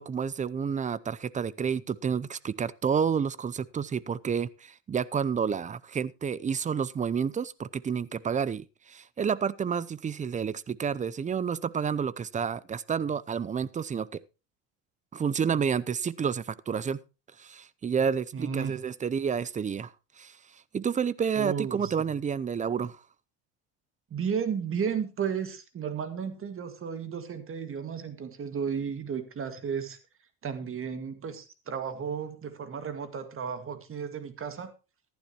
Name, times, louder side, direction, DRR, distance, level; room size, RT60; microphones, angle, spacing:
voice 1, 0.0-14.2 15.1-17.0 17.4-20.4 20.7-23.0, right 7 dB, 20° right, 0.5 m, -30 dB
voice 2, 18.3-18.8 21.4-22.1 24.1-30.0 30.4-34.7, right 7 dB, 35° right, 2.0 m, -33 dB
14.5 x 11.5 x 3.0 m
supercardioid pair, 100°, 36 cm